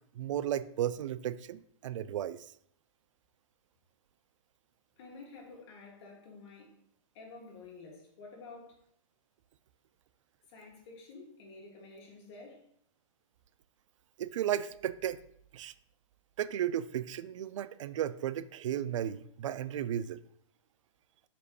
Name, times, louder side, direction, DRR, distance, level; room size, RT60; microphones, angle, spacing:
voice 1, 0.2-2.5 14.2-15.2 15.5-15.7 16.4-20.2, right 11 dB, 70° right, 15 dB, 0.4 m, -34 dB
voice 2, 5.0-6.7 7.1-8.8 10.5-12.6, left 3 dB, 55° left, -1 dB, 2.4 m, -50 dB
6.2 x 5.1 x 3.2 m, 0.69 s
hypercardioid pair, 130°, 17 cm